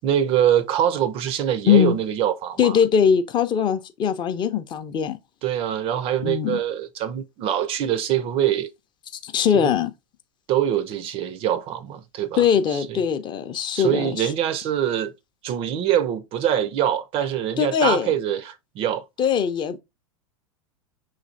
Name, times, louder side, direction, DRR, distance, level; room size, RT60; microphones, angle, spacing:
voice 1, 0.0-2.8 5.4-8.7 9.5-9.7 10.5-13.0 13.7-15.1 15.4-19.0, right 10 dB, 30° right, 0.4 m, -24 dB
voice 2, 2.6-5.2 6.2-6.6 9.2-9.9 12.4-14.3 17.6-18.1 19.2-19.8, left 8 dB, 25° left, 0.5 m, -21 dB
6.0 x 3.2 x 2.5 m
figure-of-eight pair, 85°, 18 cm